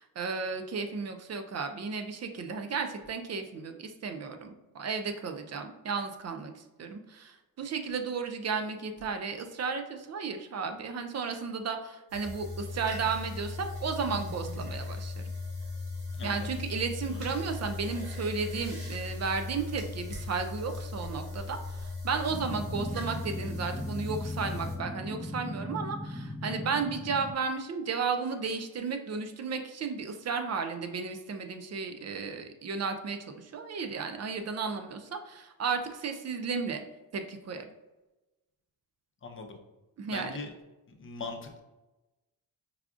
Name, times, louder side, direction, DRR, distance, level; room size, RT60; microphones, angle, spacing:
voice 1, 0.0-15.2 16.2-36.8 37.1-37.6 40.0-40.4, right 5 dB, 45° right, 6 dB, 0.5 m, -34 dB
sound 1, 12.1-24.8, left 3 dB, 75° right, 1.2 m, -38 dB
voice 2, 16.1-16.5 17.1-17.2 39.2-39.6 40.1-40.5 41.0-41.6, left 3 dB, 35° left, 3 dB, 0.6 m, -40 dB
sound 2, 22.3-27.3, equal, 5° right, 0.7 m, -39 dB
4.8 x 2.3 x 2.4 m, 1.1 s
cardioid pair, 85°, 38 cm